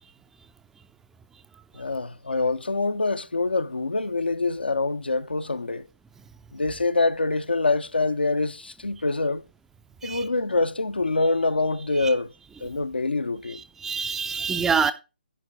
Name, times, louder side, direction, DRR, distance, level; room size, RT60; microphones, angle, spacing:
voice 1, 1.7-5.9 6.5-9.4 10.0-12.3 12.6-13.6, left 3 dB, 75° left, 0.6 m, -25 dB
voice 2, 13.5-14.9, right 6 dB, 5° right, 0.4 m, -26 dB
11.0 x 4.4 x 4.9 m
figure-of-eight pair, 140°, 5 cm